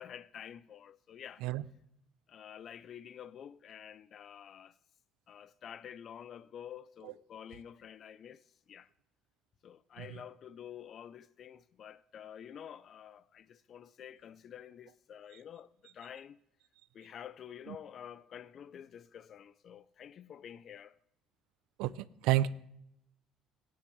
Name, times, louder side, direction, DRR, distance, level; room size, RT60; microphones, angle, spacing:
voice 1, 0.0-1.4 2.3-4.8 5.3-8.9 9.6-16.4 16.9-21.0, left 9 dB, 50° left, 0.4 m, -49 dB
voice 2, 21.8-22.5, right 15 dB, 85° right, 0.4 m, -30 dB
14.5 x 10.0 x 3.1 m
cardioid pair, 110°, 0 cm